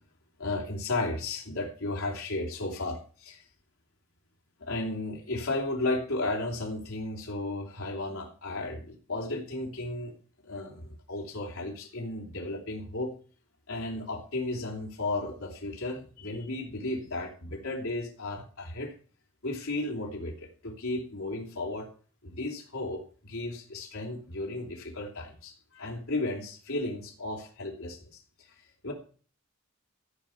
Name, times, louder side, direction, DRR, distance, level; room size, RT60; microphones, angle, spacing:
voice 1, 0.4-3.4 4.6-10.1 10.4-13.1 13.7-18.9 19.4-21.9 22.2-28.0 28.8-28.9, left 2 dB, 85° left, -1 dB, 3.3 m, -34 dB
14.5 x 5.8 x 8.8 m, 0.42 s
head